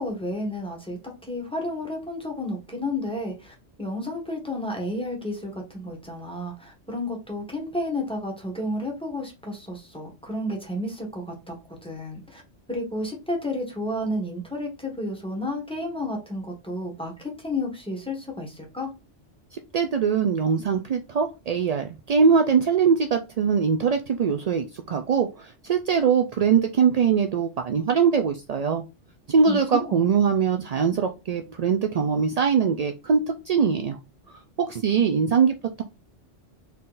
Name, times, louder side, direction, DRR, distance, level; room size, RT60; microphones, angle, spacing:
voice 1, 0.0-11.5 11.8-12.4 12.7-18.9 29.5-30.2, left 1 dB, 5° left, 0 dB, 1.3 m, -31 dB
voice 2, 19.5-28.8 29.3-34.0 34.6-35.8, right 6 dB, 65° right, 6 dB, 0.3 m, -22 dB
4.2 x 3.7 x 2.5 m, 0.28 s
omnidirectional pair, 1.2 m